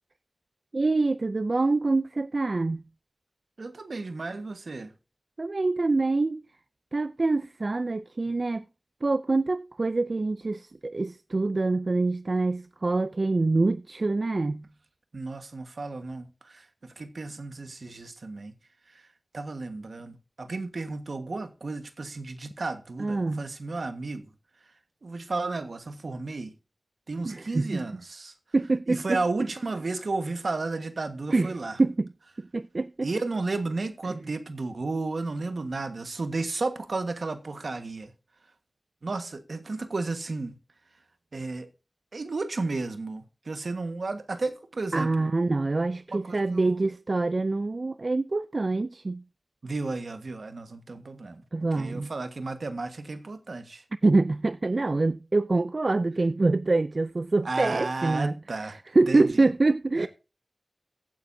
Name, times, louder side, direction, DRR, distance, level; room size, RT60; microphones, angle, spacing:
voice 1, 0.7-2.8 5.4-6.4 6.9-8.6 9.0-14.7 23.0-23.5 27.2-27.8 28.5-29.2 31.3-31.5 31.8-32.1 32.4-33.1 34.1-34.2 44.9-49.2 51.5-52.1 54.0-60.1, right 3 dB, 55° right, 0.4 m, -25 dB
voice 2, 3.6-4.9 15.1-18.5 19.3-24.3 25.0-26.5 27.1-28.3 28.9-31.8 33.0-38.1 39.0-40.6 41.3-41.7 42.1-45.3 46.1-46.8 49.6-51.4 51.8-53.8 57.4-58.8 59.1-59.5 60.0-60.1, right 3 dB, 80° right, 1.4 m, -33 dB
15.5 x 9.2 x 2.7 m
wide cardioid pair, 65°, 0 cm